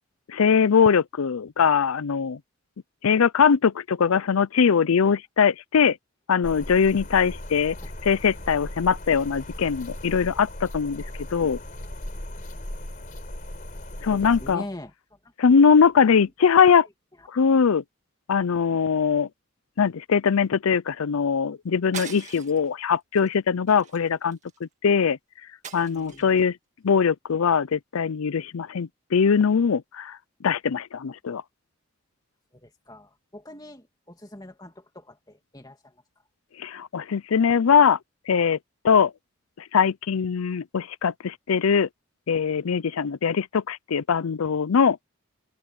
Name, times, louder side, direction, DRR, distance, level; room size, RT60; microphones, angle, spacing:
voice 1, 0.3-2.4 3.0-6.0 6.3-7.8 8.0-11.0 11.3-11.6 14.0-14.6 15.4-16.9 17.3-17.8 18.3-19.3 19.8-25.2 25.7-26.6 26.8-30.2 30.4-31.4 36.6-38.0 38.3-38.6 38.8-39.1 39.7-41.9 42.3-45.0, left 6 dB, 90° left, 0.5 m, -21 dB
sound 1, 6.4-14.6, left 1 dB, 40° left, 4.5 m, -37 dB
voice 2, 14.1-15.9 16.2-16.3 17.2-17.3 25.8-26.4 32.5-36.0, left 1 dB, 20° left, 2.5 m, -43 dB
sound 2, 21.9-22.7 23.1-23.3 23.7-24.6 25.6-26.4, right 7 dB, 35° right, 2.0 m, -40 dB
head